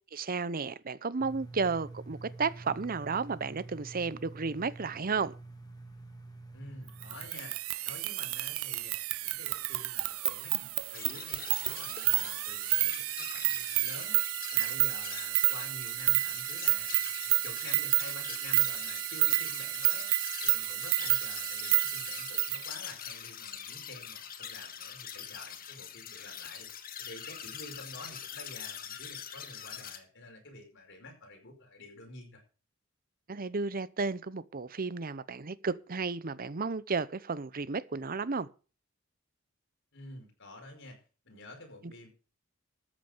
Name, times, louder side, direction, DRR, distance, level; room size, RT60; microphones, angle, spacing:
voice 1, 0.1-5.3 33.3-38.5, right 4 dB, 45° right, 0.7 m, -33 dB
sound 1, 1.2-7.3, right 2 dB, 20° left, 2.2 m, -47 dB
voice 2, 6.5-7.6 7.8-8.9 9.2-10.7 10.9-14.2 14.5-32.4 39.9-41.0 41.2-42.1, left 2 dB, 60° left, 5.1 m, -49 dB
sound 2, 7.0-22.7, right 19 dB, 85° right, 0.5 m, -30 dB
sound 3, 10.9-30.0, left 8 dB, 45° left, 1.7 m, -44 dB
13.5 x 8.6 x 5.1 m
head